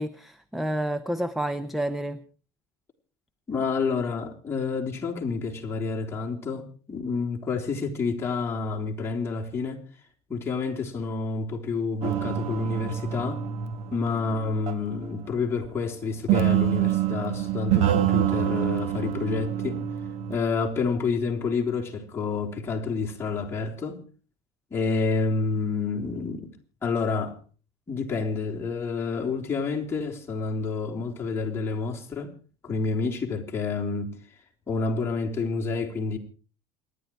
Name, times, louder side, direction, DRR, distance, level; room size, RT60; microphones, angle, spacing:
voice 1, 0.0-2.2, right 1 dB, ahead, 0.7 m, -29 dB
voice 2, 3.5-9.8 10.3-13.4 13.9-19.8 20.3-24.0 24.7-26.5 26.8-27.4 27.9-32.3 32.6-34.2 34.7-36.2, left 4 dB, 20° left, 3.6 m, -29 dB
sound 1, 12.0-15.0 16.3-20.4, right 11 dB, 55° right, 1.5 m, -26 dB
28.0 x 11.0 x 4.6 m
cardioid pair, 135°, 13 cm